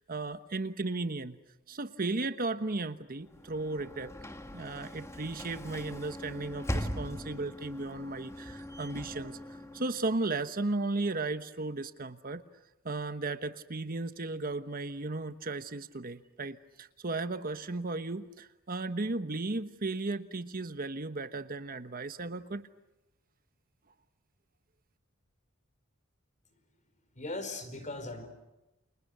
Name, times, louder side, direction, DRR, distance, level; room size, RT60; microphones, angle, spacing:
voice 1, 0.0-1.4 1.7-4.1 4.5-12.4 12.8-22.7, right 3 dB, 45° right, 10 dB, 1.2 m, -35 dB
Sliding door / Slam, 3.3-10.3, equal, 15° left, 1.8 m, -40 dB
voice 2, 27.1-28.3, left 2 dB, 35° left, 9 dB, 4.9 m, -38 dB
30.0 x 28.0 x 6.8 m, 1.0 s
head